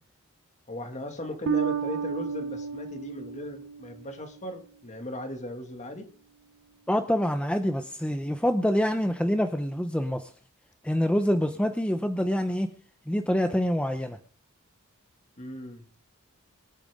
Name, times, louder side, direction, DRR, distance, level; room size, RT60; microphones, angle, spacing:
voice 1, 0.7-6.1 15.4-16.0, left 1 dB, 35° left, 6 dB, 2.1 m, -38 dB
Bass guitar, 1.5-4.5, right 6 dB, 65° right, 0.9 m, -32 dB
voice 2, 6.9-10.3 10.8-12.7 13.1-14.2, equal, 5° left, 7 dB, 0.7 m, -26 dB
24.5 x 9.1 x 3.7 m, 0.43 s
head